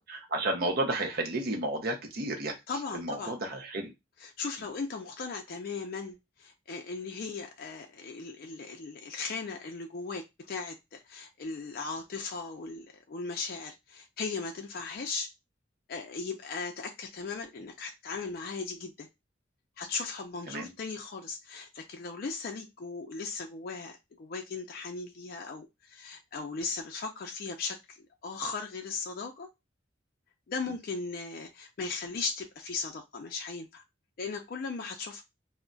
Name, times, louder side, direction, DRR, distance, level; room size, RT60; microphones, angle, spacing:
voice 1, 0.0-2.5 2.9-3.9 20.5-20.7 30.7-30.8, right 2 dB, 50° right, 0.6 m, -32 dB
voice 2, 2.7-3.3 4.4-15.3 15.9-19.1 19.8-28.0 28.2-29.5 30.5-33.8 34.2-35.2, left 4 dB, 50° left, 0.4 m, -37 dB
2.3 x 2.1 x 3.7 m
head